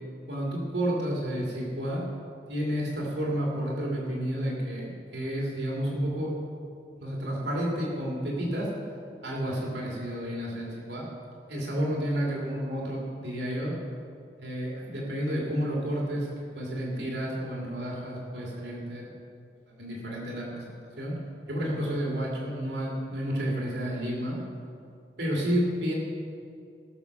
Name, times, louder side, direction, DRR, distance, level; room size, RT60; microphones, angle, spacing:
voice 1, 0.3-2.0 2.5-6.4 7.0-8.7 9.2-11.0 11.5-13.7 14.4-16.3 16.5-19.1 19.7-21.1 21.5-24.4 25.2-25.9, equal, 70° right, -3 dB, 3.1 m, -31 dB
19.5 x 6.9 x 6.1 m, 2.4 s
head